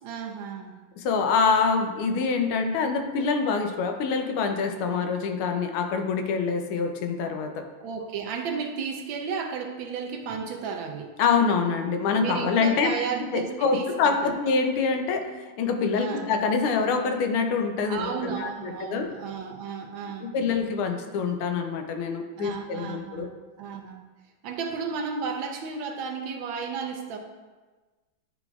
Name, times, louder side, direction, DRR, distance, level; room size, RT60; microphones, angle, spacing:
voice 1, 0.0-0.8 7.8-11.1 12.2-14.3 15.9-16.3 17.9-20.4 22.4-24.1 24.4-27.2, right 6 dB, 75° right, 3 dB, 1.3 m, -33 dB
voice 2, 1.0-7.6 11.2-12.9 13.3-19.1 20.2-23.3, left 5 dB, 80° left, 5 dB, 1.5 m, -25 dB
10.0 x 4.0 x 2.3 m, 1.3 s
omnidirectional pair, 2.3 m